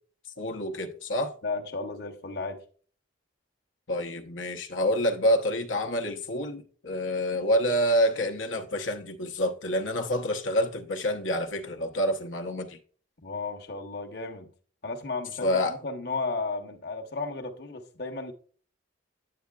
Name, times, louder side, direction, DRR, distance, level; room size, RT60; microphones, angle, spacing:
voice 1, 0.4-1.3 3.9-12.8 15.4-15.7, equal, 85° left, 0.9 m, -27 dB
voice 2, 1.4-2.6 13.2-14.5 14.8-18.3, left 3 dB, 55° left, 1.0 m, -34 dB
9.4 x 8.5 x 2.3 m
head